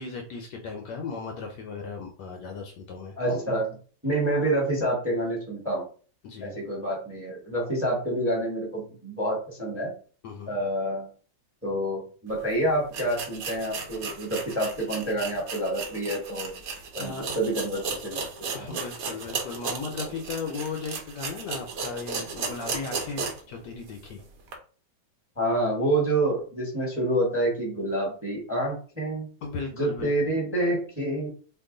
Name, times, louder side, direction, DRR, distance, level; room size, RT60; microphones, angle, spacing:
voice 1, 0.0-3.2 6.2-6.6 10.2-10.6 17.0-17.3 18.5-24.2 29.4-30.1, left 4 dB, 70° left, 3 dB, 1.1 m, -36 dB
voice 2, 3.2-3.8 4.0-5.8 6.4-9.9 10.5-11.1 11.6-16.5 16.9-18.2 18.7-18.8 25.4-29.3 29.7-31.3, right 1 dB, 10° right, -2 dB, 0.9 m, -27 dB
sound 1, 12.4-12.5 12.9-23.5 23.9-24.0 24.5-24.6, right 5 dB, 60° right, 1.0 m, -35 dB
2.9 x 2.5 x 3.7 m, 0.40 s
omnidirectional pair, 2.1 m